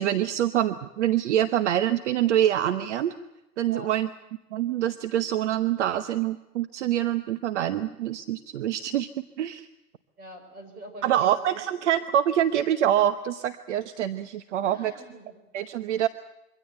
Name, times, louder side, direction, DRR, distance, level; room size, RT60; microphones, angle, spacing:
voice 1, 0.0-3.1 3.6-4.1 4.5-9.7 11.0-14.9 15.5-16.1, right 11 dB, 50° right, 12 dB, 1.0 m, -25 dB
voice 2, 10.2-11.6 14.6-15.4, right 1 dB, 20° right, 4 dB, 5.2 m, -44 dB
24.0 x 16.5 x 8.9 m, 0.94 s
hypercardioid pair, 145°, 44 cm